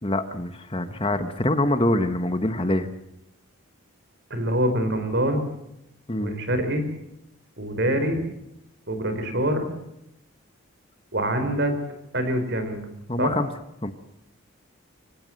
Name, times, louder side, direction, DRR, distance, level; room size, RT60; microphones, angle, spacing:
voice 1, 0.0-2.9 6.1-6.4 13.1-13.5 13.8-13.9, left 1 dB, 25° left, 9 dB, 1.2 m, -25 dB
voice 2, 4.3-5.4 6.2-6.9 7.6-8.2 8.9-9.7 11.1-11.7 12.1-12.8 13.2-13.3, right 1 dB, 50° right, 8 dB, 4.5 m, -25 dB
25.0 x 17.0 x 7.8 m, 0.85 s
head